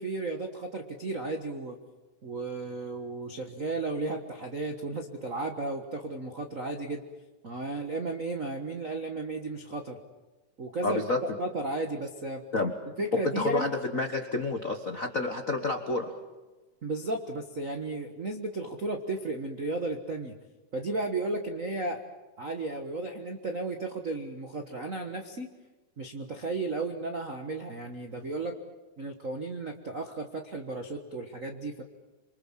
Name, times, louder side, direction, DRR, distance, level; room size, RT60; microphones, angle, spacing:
voice 1, 0.0-1.8 2.2-7.0 7.4-10.0 10.6-11.0 11.4-12.4 13.0-13.7 16.8-20.3 20.7-22.0 22.4-25.5 26.0-28.5 29.0-31.8, right 2 dB, 55° right, 4 dB, 0.8 m, -34 dB
voice 2, 10.8-11.2 12.5-12.7 13.3-16.1, left 2 dB, 60° left, 5 dB, 0.8 m, -29 dB
27.5 x 24.0 x 7.3 m, 1.2 s
omnidirectional pair, 3.8 m